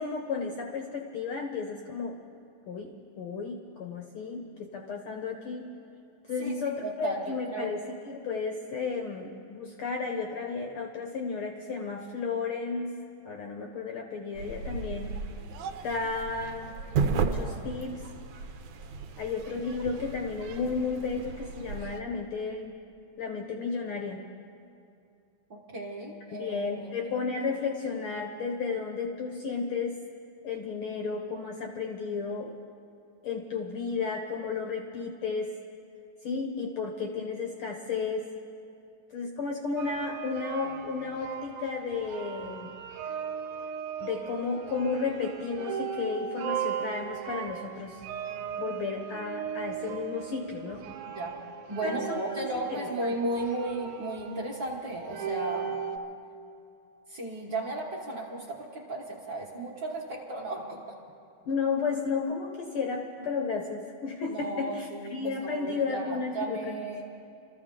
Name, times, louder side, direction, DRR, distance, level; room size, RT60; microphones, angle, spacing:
voice 1, 0.0-2.2 2.7-5.7 6.3-13.0 13.2-15.2 15.8-16.8 17.0-18.0 19.2-22.7 23.2-24.2 26.3-30.0 30.4-32.5 33.2-35.5 36.2-38.3 39.1-42.7 44.0-48.0 48.6-50.8 51.8-52.8 61.5-66.7, left 4 dB, 75° left, 2 dB, 1.3 m, -33 dB
voice 2, 6.4-7.7 25.5-26.9 51.1-51.3 51.7-55.8 57.1-60.8 64.3-67.0, right 2 dB, 45° right, -3 dB, 1.5 m, -35 dB
sound 1, 14.3-22.0, right 5 dB, 70° right, 1.9 m, -34 dB
sound 2, 39.8-56.0, right 8 dB, 90° right, 2.2 m, -37 dB
25.0 x 14.0 x 3.7 m, 2.5 s
omnidirectional pair, 3.5 m